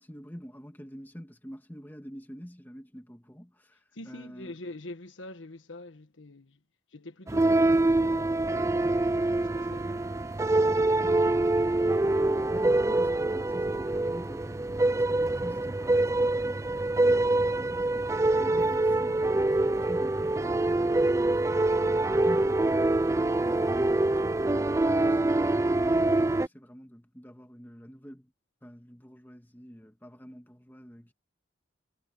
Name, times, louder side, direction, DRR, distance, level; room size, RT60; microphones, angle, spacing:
voice 1, 0.0-3.8 4.1-4.5 10.8-11.2 12.1-17.9 18.4-21.4 22.1-22.6 23.0-28.3 28.6-31.1, equal, 10° left, 2.1 m, -46 dB
voice 2, 3.9-6.6 6.9-10.2, left 2 dB, 90° left, 1.5 m, -45 dB
sound 1, 7.3-26.5, right 2 dB, 15° right, 0.3 m, -25 dB
head